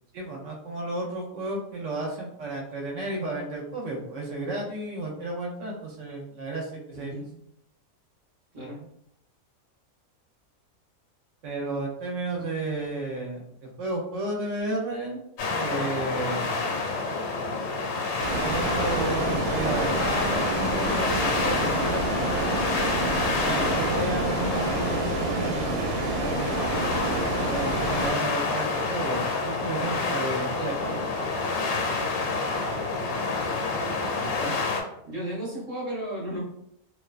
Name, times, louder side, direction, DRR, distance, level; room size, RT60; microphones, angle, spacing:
voice 1, 0.1-7.1 11.4-15.2 15.6-16.7 18.3-22.6 23.3-26.5 27.5-31.0, right 2 dB, 65° right, -1 dB, 0.9 m, -33 dB
voice 2, 6.9-7.3 8.5-8.8 34.4-34.6 35.0-36.4, right 1 dB, 35° right, -6 dB, 0.6 m, -34 dB
sound 1, 15.4-34.8, left 3 dB, 85° left, 1.1 m, -28 dB
sound 2, 18.2-28.1, right 3 dB, 90° right, 1.1 m, -29 dB
2.5 x 2.2 x 2.3 m, 0.78 s
omnidirectional pair, 1.5 m